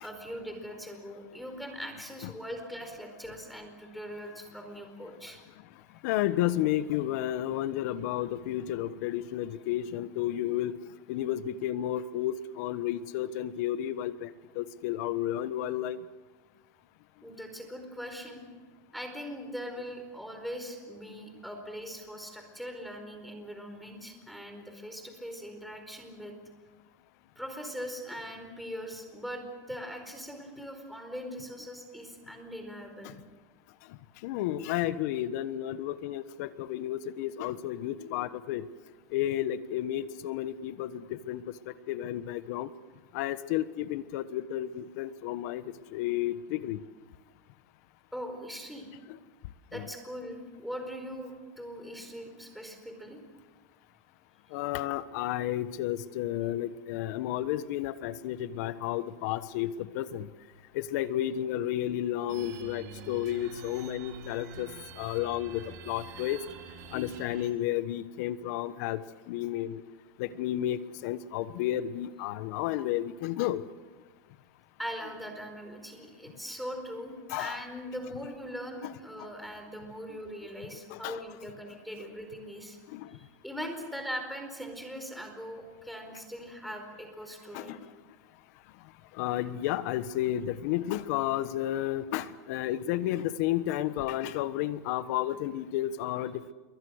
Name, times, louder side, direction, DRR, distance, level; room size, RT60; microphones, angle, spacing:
voice 1, 0.0-5.4 17.2-18.4 18.9-26.3 27.4-33.1 48.1-48.9 49.7-53.2 74.8-82.8 83.1-87.8, equal, ahead, 4 dB, 4.5 m, -41 dB
voice 2, 6.0-10.8 11.1-14.3 14.5-16.0 33.0-33.1 34.2-38.6 39.1-42.7 43.1-45.6 45.9-46.8 49.7-49.9 54.5-60.3 60.7-64.7 65.0-66.4 66.9-69.0 69.3-69.8 70.2-73.6 77.3-77.6 79.2-79.3 80.9-81.2 82.9-83.1 87.5-87.8 89.2-96.5, left 13 dB, 65° left, 14 dB, 1.3 m, -32 dB
sound 1, 62.3-67.5, right 4 dB, 70° right, 3.8 m, -46 dB
28.0 x 23.0 x 6.5 m, 1.3 s
supercardioid pair, 140°, 9 cm